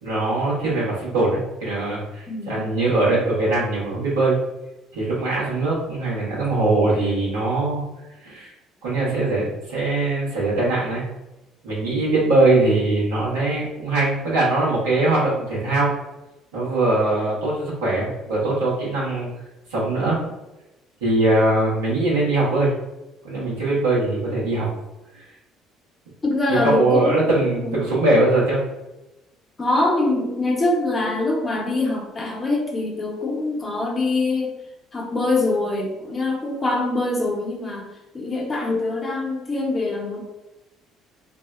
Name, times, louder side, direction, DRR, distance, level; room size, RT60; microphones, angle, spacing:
voice 1, 0.0-4.4 4.9-7.8 8.2-8.5 8.8-11.0 11.6-15.9 16.5-19.3 19.7-20.2 21.0-22.7 23.2-24.7 25.1-25.3 26.5-28.6, right 2 dB, 80° right, -8 dB, 1.0 m, -21 dB
voice 2, 2.3-2.7 26.2-27.1 27.6-27.8 29.6-34.5 34.9-37.9 38.1-40.2, left 2 dB, 30° left, -1 dB, 0.8 m, -24 dB
2.7 x 2.0 x 2.4 m, 0.97 s
hypercardioid pair, 55°, 0 cm